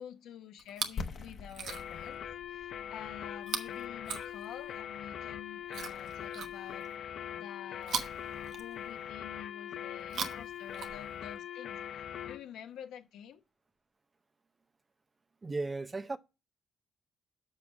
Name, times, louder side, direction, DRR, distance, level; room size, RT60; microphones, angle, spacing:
voice 1, 0.0-6.9 7.3-8.0 8.5-13.4, left 9 dB, 80° left, 1.1 m, -49 dB
Chewing mastication, 0.6-1.1 1.5-2.1 3.4-4.8 5.7-7.0 7.8-9.1 10.0-11.4 12.3-12.4, right 6 dB, 70° right, 1.1 m, -41 dB
sound 1, 1.0-6.7, left 4 dB, 50° left, 1.0 m, -46 dB
sound 2, 1.7-12.4, left 10 dB, 65° left, 0.7 m, -42 dB
voice 2, 15.4-16.2, right 3 dB, 25° right, 0.7 m, -35 dB
6.7 x 5.4 x 6.0 m
cardioid pair, 90°, 0 cm